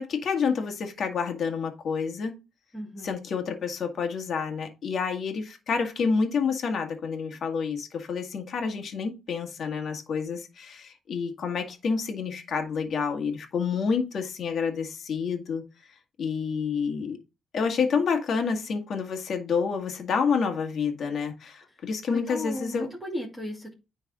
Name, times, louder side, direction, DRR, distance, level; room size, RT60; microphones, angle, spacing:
voice 1, 0.0-2.3 3.0-15.6 16.2-17.2 17.5-22.9, left 5 dB, 60° left, 1.9 m, -28 dB
voice 2, 2.7-3.1 17.5-17.6 22.1-23.7, left 1 dB, ahead, 2.5 m, -35 dB
10.0 x 4.0 x 3.6 m
cardioid pair, 90°, 0 cm